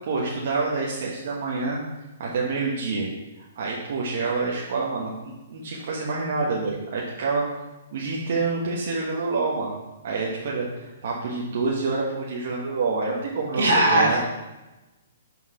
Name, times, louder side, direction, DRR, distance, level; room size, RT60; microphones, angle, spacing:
voice 1, 0.1-1.8 2.2-3.1 3.5-7.4 7.9-9.8 10.0-14.2, right 3 dB, 60° right, -3 dB, 1.2 m, -27 dB
voice 2, 13.6-14.2, right 1 dB, 85° right, -2 dB, 2.4 m, -19 dB
5.9 x 4.6 x 5.6 m, 1.1 s
hypercardioid pair, 140°, 0 cm